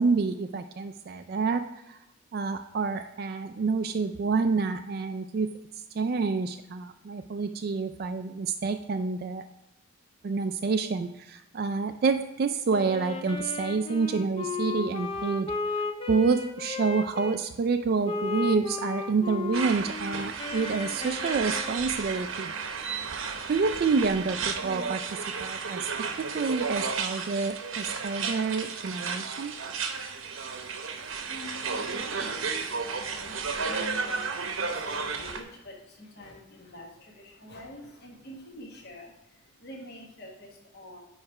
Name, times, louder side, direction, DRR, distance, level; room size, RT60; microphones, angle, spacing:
voice 1, 0.0-2.0 2.3-5.6 5.9-9.4 10.2-15.5 16.1-22.5 23.5-25.9 26.2-29.6, right 4 dB, 45° right, 8 dB, 0.3 m, -28 dB
Wind instrument woodwind instrument, 12.7-17.4 18.0-22.0, left 4 dB, 25° left, 0.6 m, -35 dB
sound 1, 19.5-35.4, right 5 dB, 70° right, 0.8 m, -33 dB
voice 2, 31.3-41.0, left 1 dB, 50° left, -2 dB, 1.4 m, -46 dB
9.5 x 3.2 x 4.7 m, 0.93 s
head